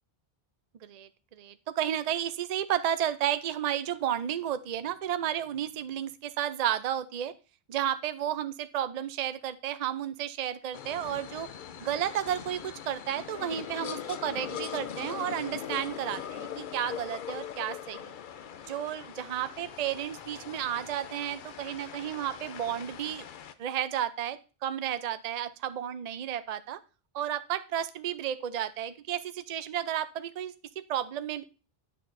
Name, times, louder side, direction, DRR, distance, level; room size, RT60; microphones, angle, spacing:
voice 1, 0.8-7.3 7.7-11.5 11.8-18.2 18.7-23.3 23.6-26.8 27.1-31.4, right 10 dB, 50° right, 12 dB, 0.5 m, -32 dB
sound 1, 10.7-23.5, left 9 dB, 60° left, 0.7 m, -41 dB
9.9 x 6.6 x 2.6 m, 0.33 s
omnidirectional pair, 1.0 m